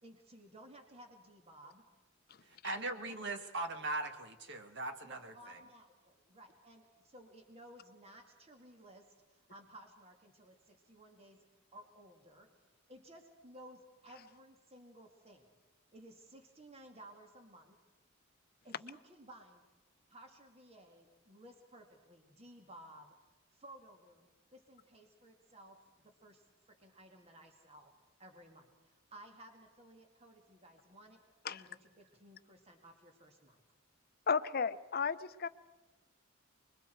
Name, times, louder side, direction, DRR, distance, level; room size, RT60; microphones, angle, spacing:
voice 1, 0.0-1.9 2.9-3.5 5.0-11.5 11.7-12.5 12.9-15.5 15.9-17.8 18.6-19.6 20.1-23.1 23.5-27.9 28.2-33.6, right 1 dB, 30° right, 3 dB, 2.2 m, -57 dB
voice 2, 2.6-5.6, right 2 dB, 55° right, 7 dB, 1.6 m, -40 dB
voice 3, 34.3-35.5, left 5 dB, 45° left, 13 dB, 0.6 m, -33 dB
30.0 x 22.0 x 4.6 m, 1.2 s
head